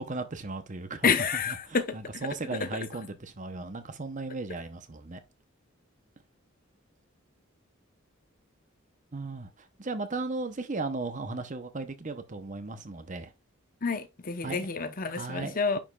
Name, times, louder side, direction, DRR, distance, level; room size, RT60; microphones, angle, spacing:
voice 1, 0.0-5.2 9.1-13.3 14.4-14.7 15.2-15.8, right 3 dB, 35° right, 0.8 m, -36 dB
voice 2, 1.0-2.0 13.8-15.8, left 5 dB, 40° left, 0.9 m, -28 dB
10.0 x 5.0 x 2.4 m
head